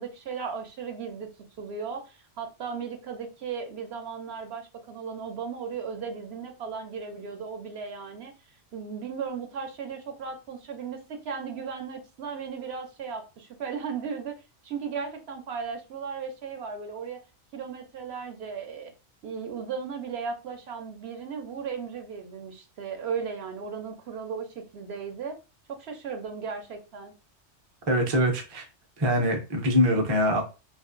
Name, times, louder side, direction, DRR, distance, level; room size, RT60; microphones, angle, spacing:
voice 1, 0.0-1.3 1.6-14.4 14.6-17.2 17.5-18.9 19.2-25.4 25.7-27.1, right 6 dB, 65° right, 0.8 m, -36 dB
voice 2, 27.9-28.6 29.0-30.4, equal, 35° right, 0.4 m, -23 dB
2.8 x 2.4 x 2.5 m
omnidirectional pair, 1.2 m